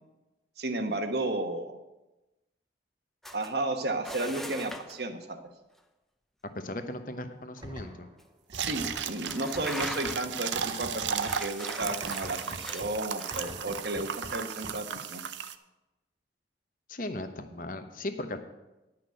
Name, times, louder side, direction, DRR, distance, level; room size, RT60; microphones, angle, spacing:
voice 1, 0.6-1.8 3.3-5.5 8.5-15.2, right 2 dB, 60° right, 6 dB, 1.2 m, -33 dB
sound 1, 3.2-3.5 4.0-5.0 7.6-7.7 8.2-8.3 9.1-10.4 11.1-13.4, equal, ahead, 0.6 m, -41 dB
voice 2, 6.5-8.1 16.9-18.4, left 1 dB, 45° left, 8 dB, 0.9 m, -37 dB
sound 2, 7.6-8.2 8.5-15.0, right 1 dB, 25° right, 1.5 m, -45 dB
sound 3, 8.5-15.6, right 8 dB, 80° right, 0.6 m, -35 dB
10.5 x 6.0 x 7.7 m, 1.0 s
head